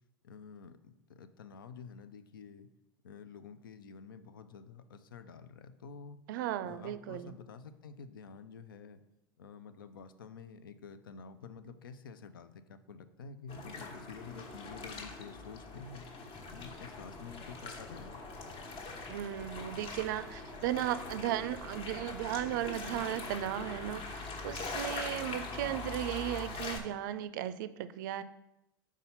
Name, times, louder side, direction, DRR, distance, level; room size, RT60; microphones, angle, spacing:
voice 1, 0.2-2.7 3.0-6.2 6.6-9.0 9.4-16.1 16.5-18.2, left 5 dB, 80° left, 11 dB, 0.5 m, -49 dB
voice 2, 6.3-7.3 19.1-28.2, right 12 dB, 65° right, 14 dB, 0.4 m, -36 dB
sound 1, 13.5-26.8, left 3 dB, 50° left, 1.2 m, -43 dB
sound 2, 16.3-25.0, left 4 dB, 20° left, 0.5 m, -54 dB
4.8 x 4.2 x 5.4 m, 0.90 s
hypercardioid pair, 80°, 11 cm